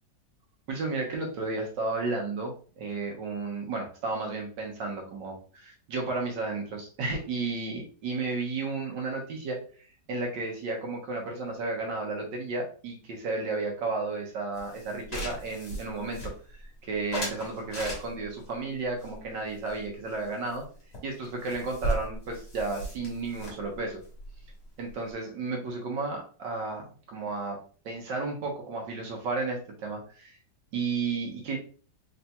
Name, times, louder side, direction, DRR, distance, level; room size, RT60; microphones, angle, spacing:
voice 1, 0.7-9.6 10.1-20.6 21.0-24.0 24.8-27.6 27.8-30.4 30.7-31.6, right 3 dB, 80° right, 1 dB, 1.7 m, -33 dB
sound 1, 14.6-16.7 17.1-18.4 19.0-20.2 20.5-20.6 20.9-21.0 21.2-25.1, right 1 dB, 35° left, 1.5 m, -37 dB
4.1 x 4.0 x 2.3 m, 0.41 s
omnidirectional pair, 1.9 m